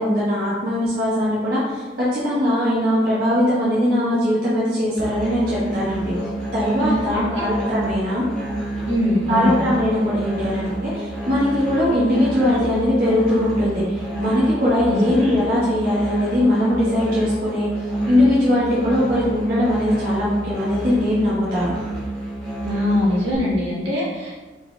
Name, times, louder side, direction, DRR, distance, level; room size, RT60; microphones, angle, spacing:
voice 1, 0.0-6.1 6.5-8.2 9.3-13.8 14.2-17.7 18.1-21.7, left 1 dB, 50° right, -9 dB, 1.0 m, -20 dB
Musical instrument, 5.0-23.3, right 1 dB, 5° left, 1.1 m, -29 dB
voice 2, 6.8-7.5 8.8-9.6 14.9-15.1 22.6-24.4, left 1 dB, 75° right, -7 dB, 1.4 m, -22 dB
4.1 x 2.7 x 3.6 m, 1.3 s
head